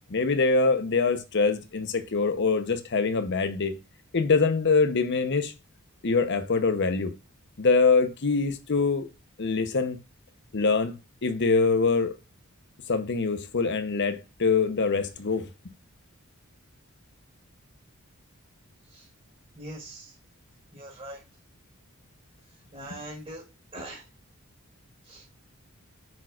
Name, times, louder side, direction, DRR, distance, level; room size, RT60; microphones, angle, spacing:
voice 1, 0.1-3.7 4.1-5.5 6.0-7.1 7.6-9.1 9.4-10.0 10.5-10.9 11.2-12.2 12.9-15.5, left 4 dB, 55° left, 0.8 m, -24 dB
voice 2, 19.6-20.1 20.7-21.2 22.7-23.4 23.7-24.0 25.0-25.2, right 1 dB, 30° right, 3.7 m, -41 dB
8.7 x 6.4 x 2.4 m
head